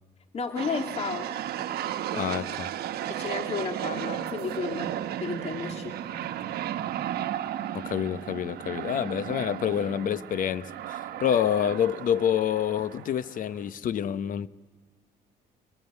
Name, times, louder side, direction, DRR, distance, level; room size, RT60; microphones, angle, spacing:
voice 1, 0.3-1.3 3.1-5.9, left 5 dB, 40° left, 2.4 m, -33 dB
sound 1, 0.6-13.7, right 11 dB, 65° right, 1.2 m, -34 dB
voice 2, 2.1-2.7 7.7-14.5, left 9 dB, 55° left, 0.9 m, -27 dB
26.0 x 20.5 x 8.1 m
cardioid pair, 110°, 17 cm